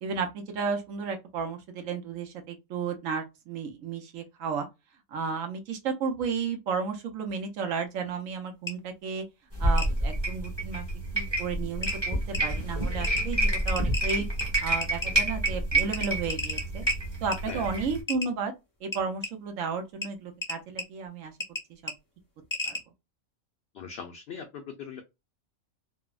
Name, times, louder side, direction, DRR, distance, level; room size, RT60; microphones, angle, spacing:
voice 1, 0.0-4.7 5.1-9.2 9.6-10.8 11.1-14.3 14.6-16.8 17.2-18.5 18.8-21.3 21.8-21.9 22.7-22.8, right 5 dB, 75° right, 1.1 m, -33 dB
sound 1, 8.7-8.8 9.8-9.9 11.3-11.4 11.8-12.0 12.3-12.4 13.0-13.2 13.7-15.1 15.5-15.6 15.8-17.0 17.3-17.4 18.1-18.3 18.9-19.3 20.0-20.1 20.4-20.8 21.4-21.6 21.9-22.0 22.5-22.8, left 2 dB, 20° left, 0.6 m, -32 dB
sound 2, 9.5-18.0, right 1 dB, 20° right, 0.9 m, -28 dB
voice 2, 23.7-25.0, left 6 dB, 65° left, 0.7 m, -40 dB
3.3 x 2.0 x 2.3 m
omnidirectional pair, 1.4 m